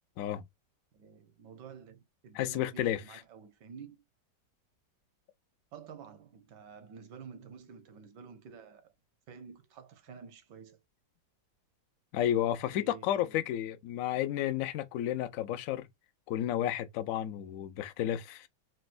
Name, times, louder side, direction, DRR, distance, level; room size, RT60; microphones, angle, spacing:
voice 1, 0.9-4.0 5.7-8.9 9.3-10.8 12.7-13.5, right 6 dB, 80° right, 1.5 m, -50 dB
voice 2, 2.3-3.0 12.1-15.9 16.3-18.5, left 12 dB, 75° left, 0.8 m, -32 dB
4.2 x 2.0 x 2.5 m
omnidirectional pair, 1.9 m